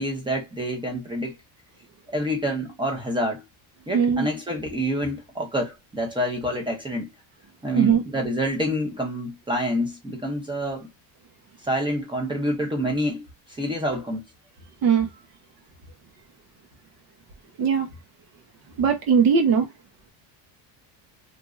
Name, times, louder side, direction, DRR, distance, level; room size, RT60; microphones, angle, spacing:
voice 1, 0.0-1.4 2.1-3.4 3.9-7.1 7.6-10.9 11.6-13.3 13.6-14.2, equal, 10° right, 0.6 m, -27 dB
voice 2, 3.9-4.3 7.7-8.0 14.8-15.1 17.6-17.9 18.8-19.7, right 6 dB, 45° right, 0.7 m, -19 dB
3.0 x 2.5 x 2.4 m
cardioid pair, 150°, 48 cm